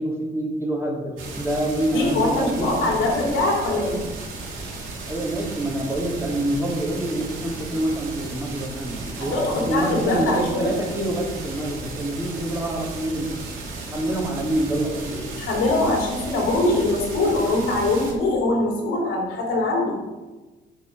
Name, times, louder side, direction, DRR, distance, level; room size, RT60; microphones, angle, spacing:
voice 1, 0.0-2.7 5.1-13.3 13.9-15.3, right 1 dB, 15° right, -3 dB, 2.9 m, -26 dB
sound 1, 1.2-18.1, right 3 dB, 90° right, 2.5 m, -35 dB
voice 2, 1.9-4.1 9.2-10.8 15.4-20.0, left 2 dB, 85° left, -2 dB, 2.9 m, -22 dB
8.6 x 5.7 x 6.4 m, 1.2 s
cardioid pair, 90°, 20 cm